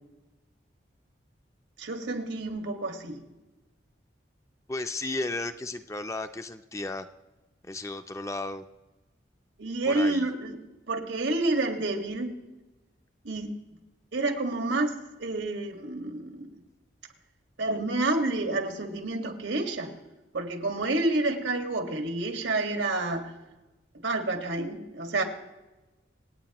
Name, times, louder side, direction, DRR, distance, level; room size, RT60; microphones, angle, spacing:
voice 1, 1.8-3.2 9.6-10.6 10.9-12.3 13.2-13.6 14.1-14.9 15.2-16.5 17.6-19.9 20.3-23.3 24.0-25.2, right 2 dB, 85° right, 5 dB, 1.8 m, -29 dB
voice 2, 4.7-7.1 7.6-8.7 9.8-10.3, left 2 dB, 15° left, 9 dB, 0.5 m, -34 dB
26.0 x 9.0 x 3.0 m, 1.1 s
head